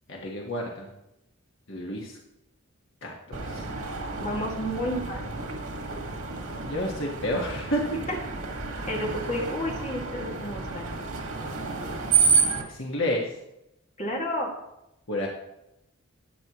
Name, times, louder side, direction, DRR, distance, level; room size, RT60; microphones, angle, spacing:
voice 1, 0.1-0.9 1.7-2.2 3.0-3.7 6.6-7.8 12.6-13.3 15.1-15.3, left 1 dB, 60° left, -1 dB, 1.5 m, -30 dB
Screech, 3.3-12.6, right 5 dB, 90° right, 1.8 m, -29 dB
voice 2, 3.9-5.3 8.9-10.8 14.0-14.5, equal, 35° left, -2 dB, 2.2 m, -31 dB
13.0 x 8.9 x 3.1 m, 0.87 s
head